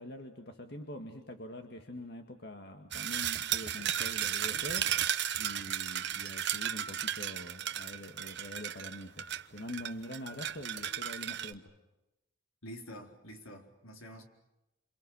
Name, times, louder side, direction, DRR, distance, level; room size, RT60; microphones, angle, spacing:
voice 1, 0.0-11.7, left 1 dB, 50° left, 5 dB, 1.9 m, -45 dB
sound 1, 2.9-11.5, right 10 dB, 55° right, 1.0 m, -35 dB
voice 2, 12.6-14.3, equal, 80° left, 3 dB, 4.4 m, -47 dB
28.5 x 28.0 x 6.5 m, 0.96 s
head